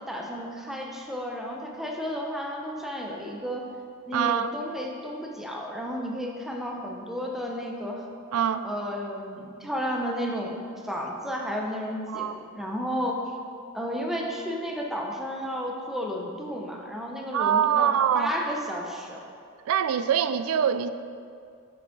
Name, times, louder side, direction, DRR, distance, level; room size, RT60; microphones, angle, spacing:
voice 1, 0.0-3.6 4.1-8.0 8.6-13.2 13.7-19.2, equal, ahead, -1 dB, 0.6 m, -32 dB
voice 2, 4.1-4.5 8.3-8.7 12.1-12.4 17.3-18.3 19.7-20.9, right 8 dB, 75° right, 13 dB, 0.3 m, -24 dB
6.0 x 5.9 x 3.8 m, 2.4 s
head